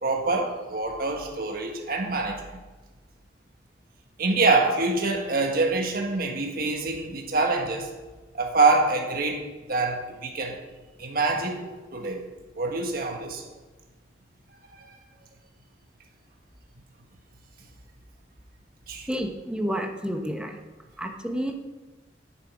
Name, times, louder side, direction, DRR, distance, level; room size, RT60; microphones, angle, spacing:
voice 1, 0.0-2.6 4.2-7.9 8.3-10.6 11.0-11.6 11.9-12.2 12.6-13.5 14.7-15.0 18.9-19.1, right 3 dB, 55° right, 2 dB, 1.5 m, -25 dB
voice 2, 19.1-20.6 21.0-21.6, equal, 5° right, 3 dB, 0.9 m, -30 dB
10.5 x 7.4 x 5.0 m, 1.2 s
head